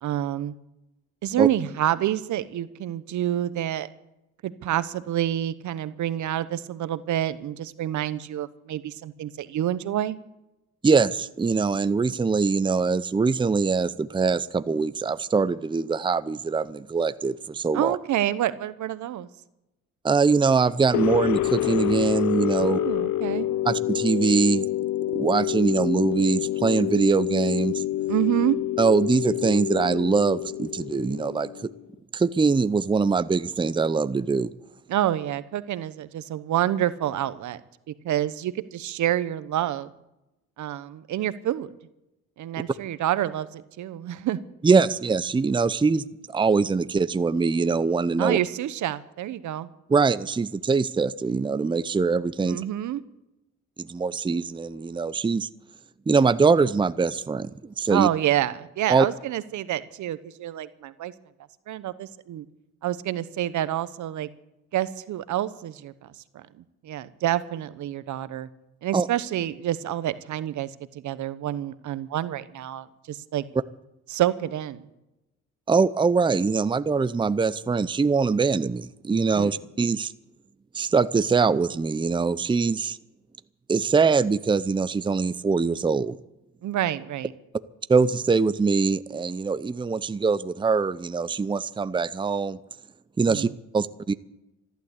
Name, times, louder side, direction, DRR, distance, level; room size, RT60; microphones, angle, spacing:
voice 1, 0.0-0.5 1.2-3.9 4.4-10.2 17.7-19.3 22.6-23.5 28.1-28.6 34.9-37.6 38.0-39.9 40.6-41.7 42.4-44.4 48.2-49.7 52.4-53.0 57.9-61.1 61.7-62.5 62.8-64.3 64.7-65.9 66.3-66.4 66.8-68.5 68.8-73.4 74.1-74.9 79.3-79.5 86.6-87.3 93.2-93.5, right 12 dB, 75° right, 14 dB, 1.0 m, -28 dB
voice 2, 10.8-18.0 20.0-22.8 23.7-24.7 25.1-27.8 28.8-31.5 32.1-34.5 44.6-48.4 49.9-52.6 53.8-55.5 56.1-58.1 58.9-59.1 68.9-69.1 75.7-80.1 80.7-83.0 83.7-86.2 87.9-92.6 93.2-93.5 93.7-94.1, right 4 dB, 15° right, 14 dB, 0.6 m, -23 dB
sound 1, 20.9-31.8, left 13 dB, 75° left, 0.8 m, -27 dB
14.5 x 11.5 x 8.1 m, 0.91 s
cardioid pair, 90°, 30 cm